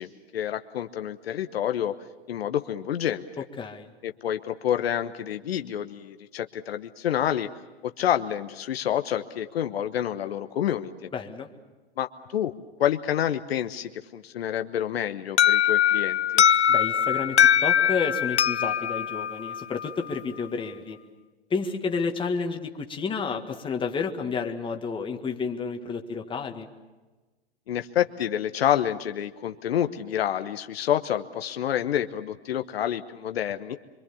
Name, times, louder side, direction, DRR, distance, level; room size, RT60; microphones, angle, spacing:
voice 1, 0.0-2.0 2.3-3.2 4.0-7.5 7.8-10.9 12.0-12.5 12.8-16.4 27.7-33.8, left 10 dB, 65° left, 8 dB, 1.1 m, -28 dB
voice 2, 3.4-3.9 11.1-11.5 16.7-21.0 21.5-26.7, left 5 dB, 15° left, 4 dB, 1.8 m, -31 dB
Alarm, 15.4-20.2, left 9 dB, 85° left, 0.7 m, -22 dB
25.0 x 24.5 x 7.1 m, 1.2 s
hypercardioid pair, 115°, 33 cm